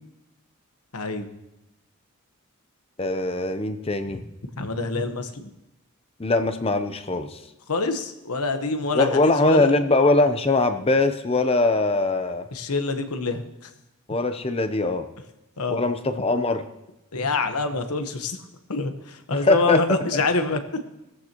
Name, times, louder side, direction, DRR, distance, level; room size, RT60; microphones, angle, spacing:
voice 1, 0.9-1.3 4.1-4.2 4.6-5.5 7.7-9.7 12.5-13.7 15.6-15.8 17.1-18.4 18.7-20.6, left 3 dB, 85° left, 7 dB, 1.2 m, -26 dB
voice 2, 3.0-4.2 6.2-7.4 8.9-12.4 14.1-15.1 15.7-16.6 19.3-19.8, left 2 dB, 25° left, 9 dB, 0.6 m, -21 dB
18.0 x 14.5 x 3.0 m, 0.93 s
head